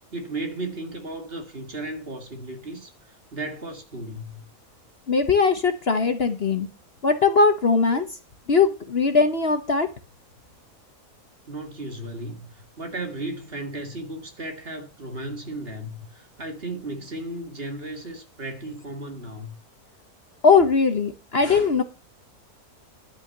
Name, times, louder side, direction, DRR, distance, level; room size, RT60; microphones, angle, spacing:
voice 1, 0.1-4.4 11.5-19.5, right 2 dB, 40° right, 2.2 m, -35 dB
voice 2, 5.1-6.7 7.0-8.1 8.5-9.9 20.4-21.8, left 4 dB, 45° left, 1.2 m, -20 dB
11.5 x 6.1 x 6.6 m
omnidirectional pair, 1.6 m